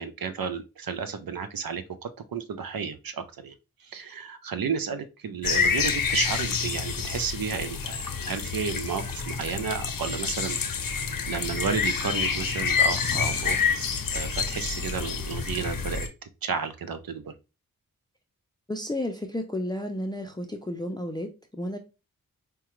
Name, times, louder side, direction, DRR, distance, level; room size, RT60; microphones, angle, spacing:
voice 1, 0.0-3.5 3.9-10.9 11.3-13.9 14.1-16.1 16.4-17.3, right 6 dB, 80° right, 0.6 m, -32 dB
sound 1, 5.4-16.1, left 6 dB, 70° left, 0.7 m, -28 dB
voice 2, 18.7-21.8, left 1 dB, 10° left, 0.5 m, -32 dB
4.7 x 2.2 x 3.0 m
wide cardioid pair, 70°, 35 cm